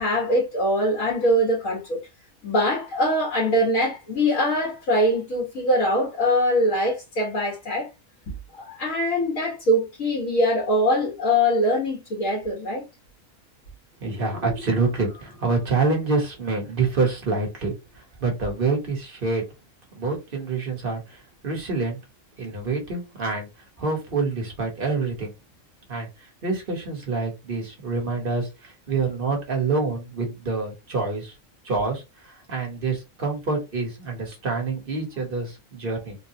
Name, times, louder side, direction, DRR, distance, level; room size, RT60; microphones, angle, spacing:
voice 1, 0.0-2.0 2.4-7.9 8.6-12.9, equal, 85° left, 1.8 m, -22 dB
voice 2, 14.0-17.7 18.2-19.4 20.0-21.0 21.4-22.0 22.4-23.5 23.8-25.3 25.9-26.1 26.4-31.3 31.6-32.0 32.5-36.2, right 4 dB, 45° right, 1.3 m, -26 dB
3.7 x 2.2 x 2.8 m
omnidirectional pair, 1.3 m